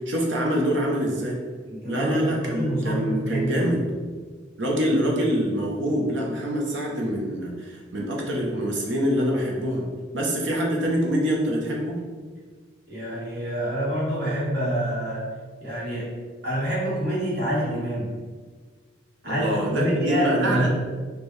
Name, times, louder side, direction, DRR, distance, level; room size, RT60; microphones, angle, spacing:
voice 1, 0.1-1.4 1.9-3.9 4.6-9.9 10.1-12.0 19.2-20.7, equal, 75° right, -1 dB, 0.7 m, -25 dB
voice 2, 1.7-3.8 12.9-18.2 19.2-20.7, equal, 55° right, -7 dB, 1.3 m, -27 dB
4.4 x 2.2 x 3.2 m, 1.5 s
head